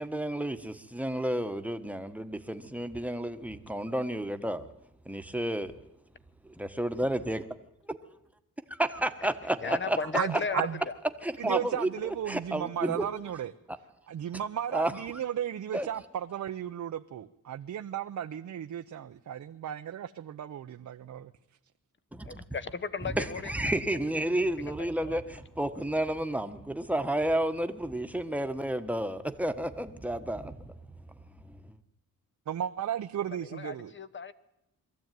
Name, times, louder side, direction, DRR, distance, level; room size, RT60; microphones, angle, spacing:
voice 1, 0.0-4.7 5.0-5.7 6.4-7.5 8.7-10.0 11.2-13.0 14.7-14.9 15.7-15.9 22.1-22.4 23.1-30.7 31.4-31.6, right 1 dB, 5° right, 1.4 m, -31 dB
voice 2, 9.6-10.9 22.2-23.7 24.7-24.8 25.0-25.2 33.3-34.3, left 5 dB, 35° left, 1.2 m, -36 dB
voice 3, 10.1-10.8 11.4-13.5 14.1-21.3 32.5-33.9, right 10 dB, 60° right, 0.8 m, -34 dB
22.5 x 14.0 x 9.4 m
cardioid pair, 100°, 33 cm